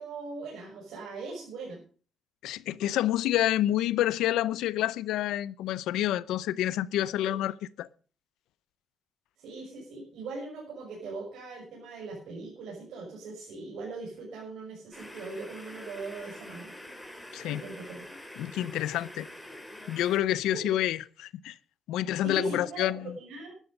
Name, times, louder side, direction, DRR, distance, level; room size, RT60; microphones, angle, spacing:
voice 1, 0.0-1.8 7.2-7.3 9.4-16.7 17.5-18.0 20.5-20.7 22.2-23.5, right 3 dB, 80° right, 6.1 m, -40 dB
voice 2, 2.4-7.9 17.3-17.6 18.4-19.3 19.9-21.6 21.9-23.2, left 13 dB, 90° left, 0.6 m, -28 dB
sound 1, 14.9-20.2, left 1 dB, 5° left, 3.6 m, -45 dB
13.5 x 12.0 x 5.3 m
cardioid pair, 90°, 0 cm